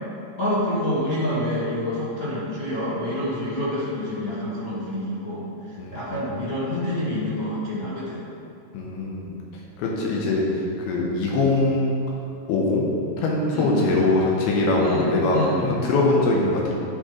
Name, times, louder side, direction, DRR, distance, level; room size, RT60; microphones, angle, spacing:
voice 1, 0.4-8.2 13.5-13.9 14.8-15.7, left 1 dB, 70° left, -11 dB, 0.8 m, -27 dB
voice 2, 8.7-9.4 9.8-10.4 10.9-12.0 12.5-15.4 15.6-16.7, left 2 dB, 85° left, -3 dB, 2.8 m, -22 dB
11.5 x 4.4 x 3.1 m, 2.5 s
omnidirectional pair, 4.5 m